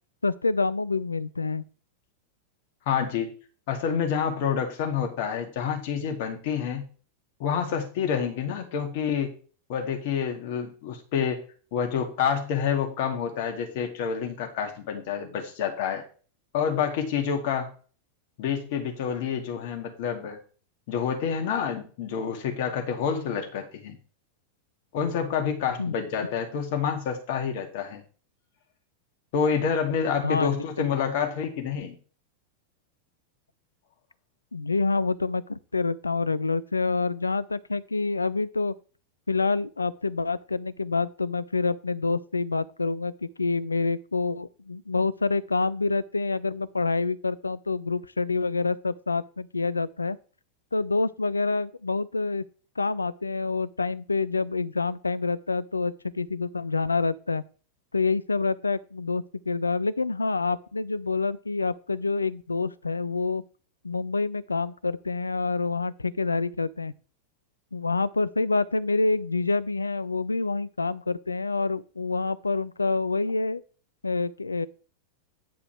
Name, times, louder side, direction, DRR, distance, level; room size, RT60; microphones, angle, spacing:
voice 1, 0.2-1.6 25.8-25.9 30.2-30.5 30.8-30.9 34.5-38.7 39.3-50.2 50.7-52.4 52.8-57.4 57.9-63.4 63.8-66.9 67.7-73.6 74.0-74.7, left 3 dB, 80° left, 0.4 m, -27 dB
voice 2, 2.9-3.3 3.7-6.8 7.4-9.3 9.7-11.4 11.7-16.0 16.5-17.7 18.4-20.4 20.9-24.0 24.9-28.0 29.3-32.0, left 7 dB, 50° left, 2.1 m, -28 dB
9.4 x 4.9 x 4.6 m
figure-of-eight pair, 90°, 0 cm